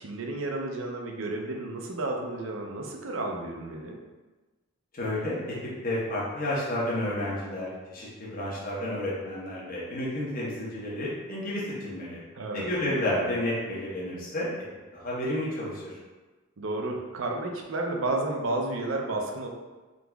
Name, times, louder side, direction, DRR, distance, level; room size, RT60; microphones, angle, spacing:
voice 1, 0.0-4.0 12.3-12.7 16.6-19.5, right 2 dB, 65° right, 1 dB, 0.5 m, -32 dB
voice 2, 4.9-5.4 5.8-12.2 12.5-14.5 14.9-16.0, left 1 dB, 45° left, -7 dB, 1.0 m, -31 dB
3.8 x 2.9 x 2.3 m, 1.2 s
head